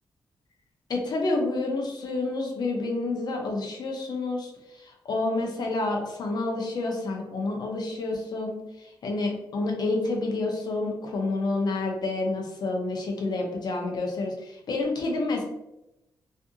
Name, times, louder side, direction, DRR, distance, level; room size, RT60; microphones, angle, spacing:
voice 1, 0.9-15.4, left 2 dB, 55° left, 1 dB, 0.6 m, -29 dB
2.6 x 2.5 x 2.6 m, 0.89 s
wide cardioid pair, 145°, 8 cm